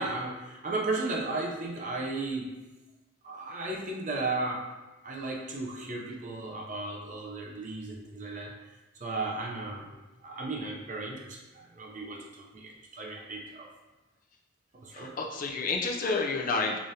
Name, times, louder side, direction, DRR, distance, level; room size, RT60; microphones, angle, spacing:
voice 1, 0.0-2.5 3.2-4.7 5.0-8.5 9.0-9.8 10.2-13.7 14.7-15.1, right 2 dB, 40° right, -1 dB, 0.6 m, -35 dB
voice 2, 14.9-16.8, left 3 dB, 40° left, 0 dB, 0.4 m, -30 dB
4.9 x 2.5 x 2.7 m, 1.1 s
head